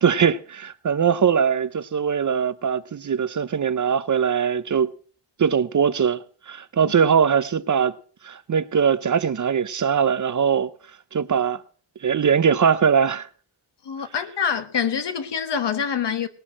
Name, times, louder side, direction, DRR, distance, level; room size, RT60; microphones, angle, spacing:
voice 1, 0.0-4.9 5.4-7.9 8.2-10.7 11.1-11.6 12.0-13.3, right 7 dB, 45° right, 0.6 m, -21 dB
voice 2, 13.8-16.3, left 7 dB, 70° left, 1.2 m, -25 dB
18.5 x 6.3 x 7.4 m
wide cardioid pair, 170°, 43 cm